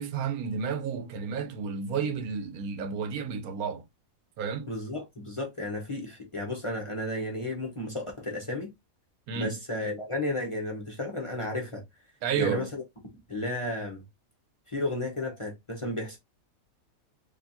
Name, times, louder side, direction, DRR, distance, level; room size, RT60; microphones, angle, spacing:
voice 1, 0.0-3.8 4.4-4.7 9.3-9.6 12.2-12.7, right 6 dB, 85° right, 1.2 m, -31 dB
voice 2, 4.7-8.7 9.3-11.8 12.3-12.8 13.3-14.0 14.7-16.2, left 1 dB, 25° left, 0.8 m, -33 dB
4.4 x 2.9 x 2.7 m
omnidirectional pair, 1.5 m